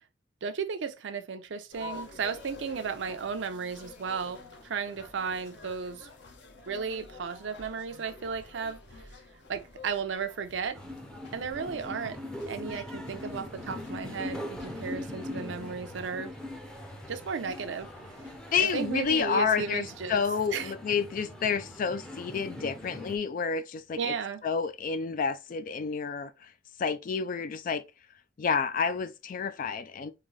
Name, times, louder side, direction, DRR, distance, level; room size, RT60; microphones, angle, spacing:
voice 1, 0.4-6.1 6.7-8.8 9.5-10.8 11.3-12.2 12.5-16.3 17.1-17.9 18.7-20.2 20.5-20.7 24.0-24.4, right 5 dB, 70° right, 0.5 m, -34 dB
sound 1, 1.7-19.2, left 3 dB, 60° left, 0.9 m, -50 dB
sound 2, 10.7-23.2, left 1 dB, 5° left, 0.6 m, -41 dB
voice 2, 18.5-24.1 24.4-26.5 26.8-27.8 28.4-30.1, left 6 dB, 45° left, 0.3 m, -29 dB
3.9 x 2.7 x 3.0 m
head